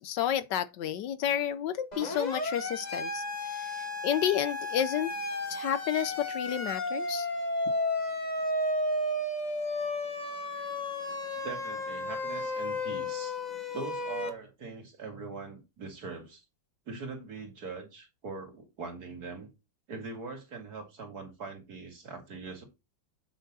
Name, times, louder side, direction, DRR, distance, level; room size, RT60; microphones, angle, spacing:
voice 1, 0.0-5.1 5.5-7.3, left 10 dB, 75° left, 1.2 m, -31 dB
Siren, 1.9-14.3, left 2 dB, 25° left, 1.6 m, -33 dB
voice 2, 11.4-13.4 13.7-16.4 16.9-19.5 19.9-22.6, right 4 dB, 50° right, 2.7 m, -42 dB
8.3 x 6.0 x 4.0 m
omnidirectional pair, 2.1 m